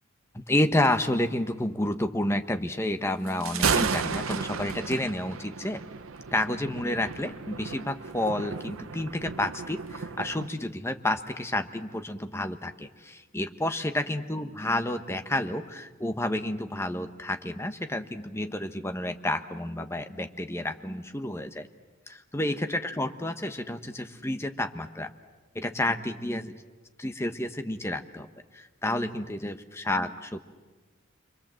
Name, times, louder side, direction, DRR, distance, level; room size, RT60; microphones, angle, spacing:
voice 1, 0.3-5.8 6.3-21.7 22.1-25.1 25.5-26.6 27.0-28.3 28.5-30.4, left 1 dB, 15° left, 7 dB, 1.0 m, -30 dB
Thunder, 3.3-10.5, right 5 dB, 85° right, 0.9 m, -33 dB
29.0 x 23.5 x 7.6 m, 1.3 s
head